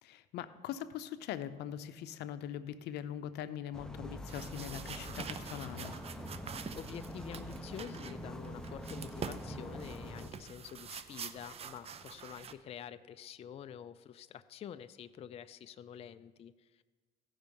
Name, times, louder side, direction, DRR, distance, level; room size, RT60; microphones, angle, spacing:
voice 1, 0.0-6.0, left 10 dB, 80° left, 12 dB, 0.6 m, -42 dB
sound 1, 3.7-10.3, equal, 5° left, 0.8 m, -44 dB
sound 2, 4.3-12.5, right 6 dB, 35° right, 0.6 m, -46 dB
voice 2, 6.8-16.8, left 9 dB, 35° left, 12 dB, 0.3 m, -48 dB
16.0 x 5.6 x 5.2 m, 1.4 s
cardioid pair, 110°, 17 cm